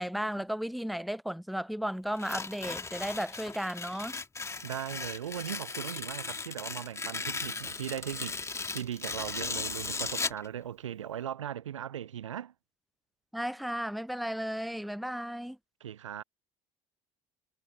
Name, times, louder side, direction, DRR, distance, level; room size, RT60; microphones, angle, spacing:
voice 1, 0.0-4.1 13.3-15.6, equal, ahead, 0.8 m, -34 dB
Tearing, 2.1-10.5, left 4 dB, 20° left, 2.4 m, -37 dB
voice 2, 4.6-12.5 15.8-16.2, right 10 dB, 80° right, 0.6 m, -38 dB
figure-of-eight pair, 60°, 16 cm